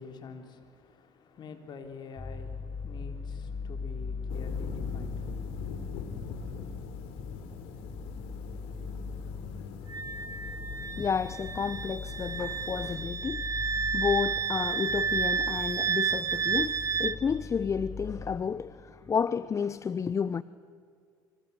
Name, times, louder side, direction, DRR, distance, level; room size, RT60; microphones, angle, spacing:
voice 1, 0.0-5.4, left 5 dB, 45° left, 3.9 m, -47 dB
sound 1, 2.2-18.4, left 4 dB, 15° left, 6.0 m, -40 dB
sound 2, 4.3-13.0, left 6 dB, 70° left, 3.4 m, -43 dB
Wind instrument woodwind instrument, 9.9-17.2, right 6 dB, 35° right, 1.7 m, -31 dB
voice 2, 11.0-20.4, left 6 dB, 30° left, 0.7 m, -31 dB
26.0 x 25.5 x 8.4 m
hypercardioid pair, 70°, 10 cm